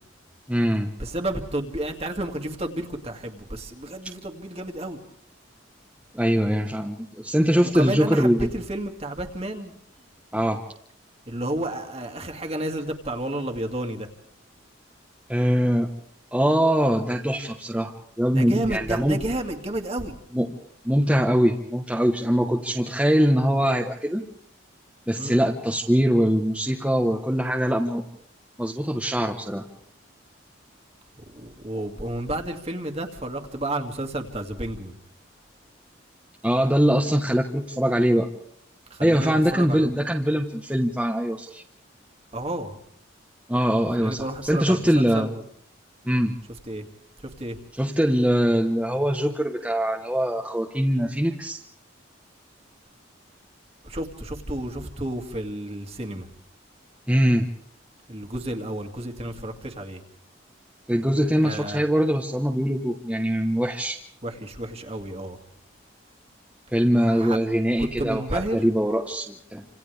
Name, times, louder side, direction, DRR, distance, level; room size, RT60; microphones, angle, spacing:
voice 1, 0.5-0.9 6.1-8.5 10.3-10.6 15.3-15.9 16.3-19.2 20.3-20.5 20.8-24.3 25.1-28.0 28.6-29.6 36.4-38.3 39.0-41.6 43.5-45.3 46.1-46.4 47.8-51.6 57.1-57.5 60.9-64.0 66.7-69.6, equal, 5° right, 1 dB, 1.2 m, -22 dB
voice 2, 1.0-5.0 7.7-9.8 11.3-14.1 18.3-20.1 25.2-25.4 31.3-34.9 38.9-39.9 42.3-42.8 44.0-45.4 46.7-46.9 47.2-47.6 53.8-56.3 58.1-60.0 61.4-61.8 64.2-65.4 67.0-67.4 67.8-68.7, right 1 dB, 30° right, 4 dB, 2.3 m, -31 dB
29.0 x 27.0 x 3.5 m, 0.64 s
head